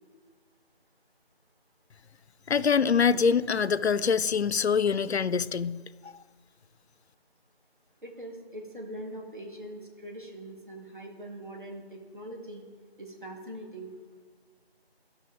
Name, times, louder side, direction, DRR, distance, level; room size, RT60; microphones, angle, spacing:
voice 1, 2.5-6.1, left 6 dB, 80° left, 16 dB, 0.5 m, -25 dB
voice 2, 8.0-12.7 13.0-13.9, right 1 dB, 50° right, 1 dB, 1.8 m, -42 dB
13.0 x 6.4 x 3.6 m, 1.5 s
figure-of-eight pair, 170°, 32 cm